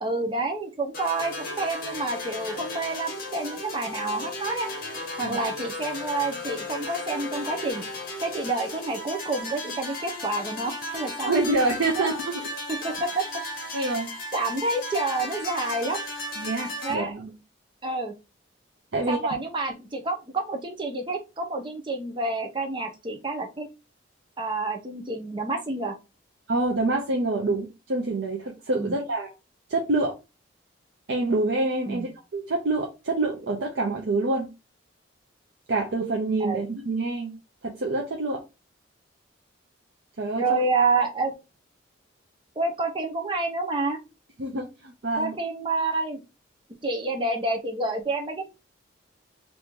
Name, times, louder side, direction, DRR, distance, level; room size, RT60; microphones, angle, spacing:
voice 1, 0.0-4.7 5.2-7.8 8.2-11.3 12.0-12.1 12.8-13.3 13.7-13.9 14.3-16.0 16.8-17.1 17.8-18.1 19.1-23.7 24.4-26.0 28.8-29.0 31.9-32.1 36.4-36.6 40.4-41.3 42.6-44.0 45.2-46.2 46.8-48.4, right 3 dB, 25° right, 0.7 m, -28 dB
sound 1, 0.9-16.9, left 2 dB, 50° left, 1.3 m, -35 dB
voice 2, 11.3-12.3 13.7-14.1 16.4-17.4 18.9-19.2 26.5-29.3 29.7-30.1 31.1-34.5 35.7-37.3 37.6-38.4 40.2-40.6 44.4-45.4, right 2 dB, 70° right, 0.7 m, -26 dB
3.0 x 2.7 x 3.5 m
head